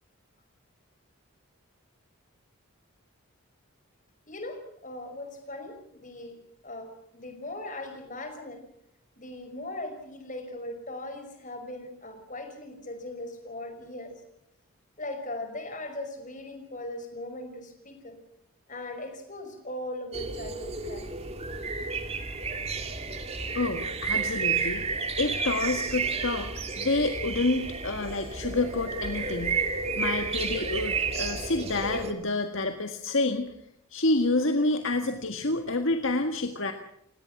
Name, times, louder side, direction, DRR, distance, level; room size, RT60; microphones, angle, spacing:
voice 1, 4.3-6.4 6.6-8.6 9.2-14.1 15.0-18.2 18.7-21.2, left 1 dB, 35° left, 6 dB, 5.5 m, -39 dB
sound 1, 20.1-32.1, right 4 dB, 30° right, 2.3 m, -31 dB
voice 2, 23.1-24.8 25.2-33.5 33.9-36.7, left 2 dB, 60° left, 6 dB, 1.8 m, -28 dB
29.5 x 18.0 x 6.1 m, 0.73 s
head